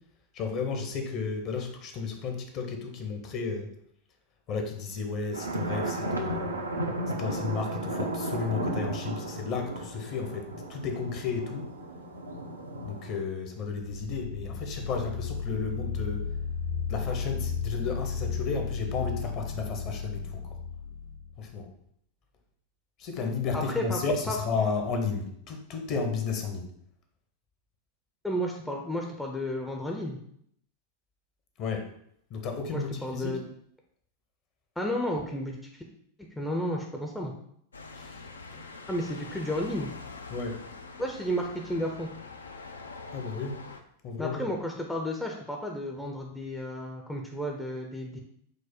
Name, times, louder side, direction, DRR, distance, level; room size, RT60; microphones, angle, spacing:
voice 1, 0.3-3.7 4.5-6.5 7.2-11.7 12.8-16.2 16.9-20.4 21.4-21.7 23.0-26.7 31.6-31.9 32.3-33.3 37.9-38.2 38.5-38.7 40.3-40.6 43.1-43.6 44.0-44.5, left 5 dB, 40° left, 4 dB, 0.7 m, -33 dB
sound 1, 5.3-13.2, right 1 dB, 80° right, 0.5 m, -34 dB
sound 2, 13.9-21.5, left 6 dB, 60° left, 1.4 m, -34 dB
voice 2, 23.5-24.4 28.2-30.2 32.7-33.5 34.8-35.8 36.2-37.3 38.9-39.9 41.0-42.1 44.2-48.2, equal, 5° left, 0 dB, 0.5 m, -32 dB
sound 3, 37.7-43.8, left 4 dB, 75° left, 0.3 m, -44 dB
4.9 x 2.1 x 4.2 m, 0.69 s
figure-of-eight pair, 90°, 0 cm